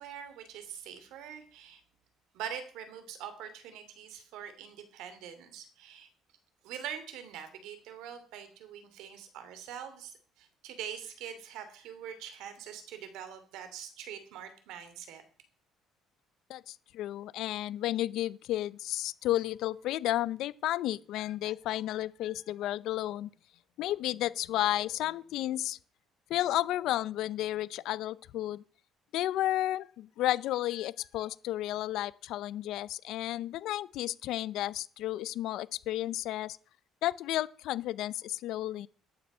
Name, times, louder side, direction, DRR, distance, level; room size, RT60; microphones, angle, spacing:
voice 1, 0.0-1.8 2.3-6.1 6.6-15.2, right 9 dB, 80° right, 2.8 m, -44 dB
voice 2, 16.5-23.3 23.8-25.8 26.3-28.6 29.1-36.6 37.0-38.9, left 14 dB, 70° left, 0.5 m, -32 dB
13.5 x 9.3 x 5.5 m
cardioid pair, 145°, 0 cm